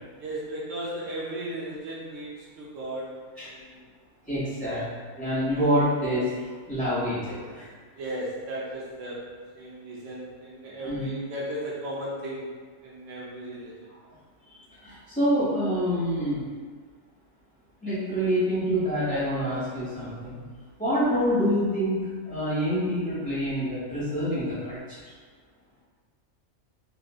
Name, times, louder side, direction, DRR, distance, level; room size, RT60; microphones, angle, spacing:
voice 1, 0.2-3.8 4.7-4.9 5.5-5.6 8.0-9.3 9.5-12.5 12.8-13.7, right 1 dB, 75° right, -5 dB, 0.9 m, -36 dB
voice 2, 4.3-4.8 5.2-7.7 10.8-11.1 14.5-14.6 14.8-16.5 17.8-20.4 20.8-25.0, equal, 5° left, -12 dB, 1.1 m, -27 dB
3.0 x 2.5 x 2.3 m, 1.5 s
omnidirectional pair, 1.3 m